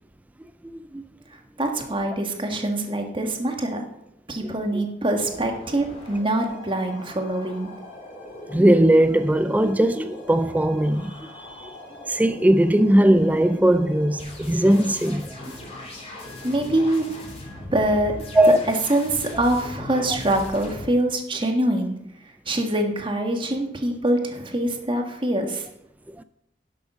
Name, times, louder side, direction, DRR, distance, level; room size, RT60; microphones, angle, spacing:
voice 1, 0.6-1.0 4.4-4.8 8.5-11.7 12.1-15.5 18.3-18.6 26.1-26.2, right 1 dB, 10° right, 0.4 m, -19 dB
voice 2, 1.6-3.8 4.3-7.7 16.4-17.0 17.7-18.2 18.9-21.9 22.4-25.7, right 1 dB, 30° right, 1.7 m, -24 dB
sound 1, 5.1-20.9, left 1 dB, 35° left, 3.2 m, -39 dB
11.5 x 6.9 x 6.3 m
head